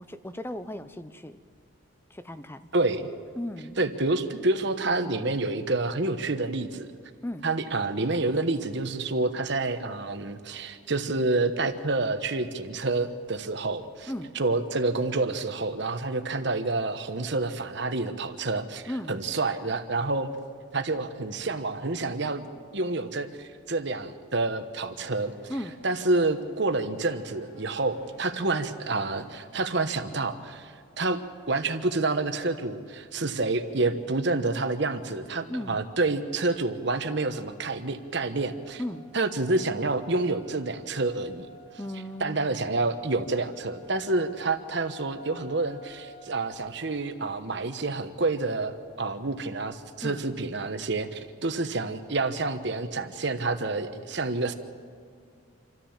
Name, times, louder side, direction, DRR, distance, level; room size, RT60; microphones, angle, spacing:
voice 1, 0.0-1.4 2.1-2.7 3.4-3.8 7.2-7.5 14.1-14.4 18.9-19.2 25.5-25.8 35.5-35.8 38.8-39.1 41.8-42.6 50.0-50.3, left 1 dB, 10° left, 12 dB, 0.6 m, -36 dB
voice 2, 2.7-3.1 3.8-6.9 7.4-20.3 20.7-22.5 22.7-25.3 25.8-31.2 31.5-38.8 39.1-41.5 42.2-54.5, right 3 dB, 55° right, 8 dB, 1.2 m, -28 dB
sound 1, 24.9-30.2, equal, 65° left, 6.9 m, -55 dB
sound 2, 37.1-46.5, right 1 dB, 45° left, 7.1 m, -52 dB
27.5 x 13.5 x 7.4 m, 2.3 s
head